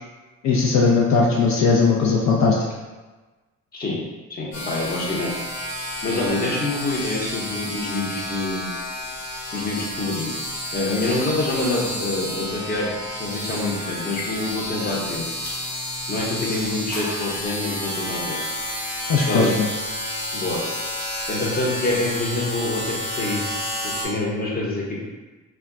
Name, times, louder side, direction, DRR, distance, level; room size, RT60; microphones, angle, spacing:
voice 1, 0.4-2.6 19.1-19.7, left 4 dB, 65° left, -3 dB, 0.5 m, -18 dB
voice 2, 4.3-5.4 6.0-8.8 9.5-10.3 10.7-15.3 16.1-18.4 19.3-19.5 20.3-20.6 21.3-23.4 23.8-25.0, left 2 dB, 30° left, -3 dB, 0.8 m, -26 dB
sound 1, 4.5-24.1, left 1 dB, 90° left, 1.0 m, -30 dB
2.3 x 2.1 x 3.7 m, 1.2 s
cardioid pair, 90°, 30 cm